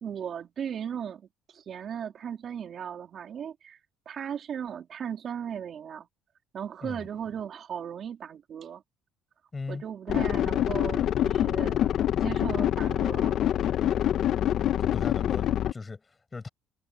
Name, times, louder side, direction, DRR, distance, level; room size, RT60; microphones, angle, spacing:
voice 1, 0.0-1.2 1.5-3.8 4.0-6.1 6.5-8.8 9.7-11.8 12.1-13.4, right 8 dB, 50° right, 3.2 m, -37 dB
voice 2, 9.5-9.8 14.8-16.5, left 4 dB, 25° left, 5.9 m, -38 dB
sound 1, 10.1-15.7, left 11 dB, 60° left, 0.8 m, -26 dB
cardioid pair, 115°, 0 cm